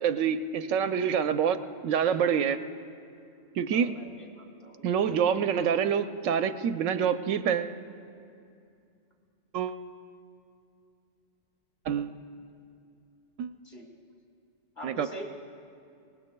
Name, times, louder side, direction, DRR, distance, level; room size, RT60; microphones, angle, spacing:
voice 1, 0.0-2.6 3.5-3.9 4.8-7.7 9.5-9.8 11.9-12.2 13.4-13.5 14.8-15.1, right 7 dB, 85° right, 9 dB, 1.0 m, -26 dB
voice 2, 3.7-4.9 13.6-13.9 14.8-15.2, right 1 dB, 25° left, -1 dB, 2.6 m, -43 dB
25.5 x 20.0 x 2.2 m, 2.5 s
omnidirectional pair, 1.3 m